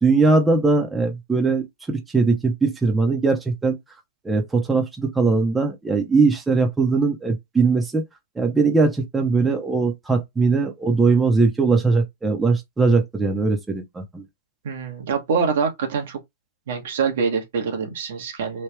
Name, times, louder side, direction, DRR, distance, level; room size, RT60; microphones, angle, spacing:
voice 1, 0.0-3.8 4.2-8.0 8.4-14.2, right 4 dB, 10° right, 0.8 m, -20 dB
voice 2, 14.6-16.2 16.7-18.6, right 5 dB, 70° right, 1.1 m, -25 dB
3.2 x 2.3 x 3.3 m
hypercardioid pair, 115°, 0 cm